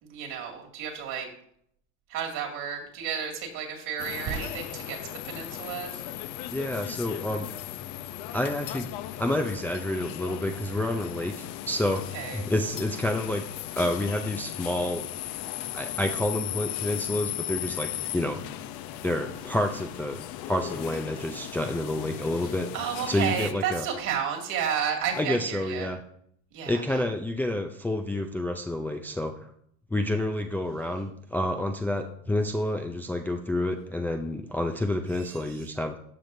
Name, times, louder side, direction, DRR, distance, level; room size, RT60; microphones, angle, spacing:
voice 1, 0.0-1.3 2.1-6.0 12.1-12.5 22.4-25.9 26.5-26.8 35.4-35.6, right 7 dB, 60° right, 1 dB, 2.4 m, -32 dB
sound 1, 4.0-23.5, left 13 dB, 55° left, 0.7 m, -37 dB
voice 2, 6.5-7.5 8.3-8.9 9.2-12.1 12.3-13.4 13.7-15.1 15.7-18.4 19.0-22.7 23.1-23.9 25.2-26.0 26.7-29.5 29.9-36.0, left 1 dB, 5° left, 4 dB, 0.4 m, -29 dB
13.5 x 5.1 x 2.7 m, 0.67 s
supercardioid pair, 115°, 36 cm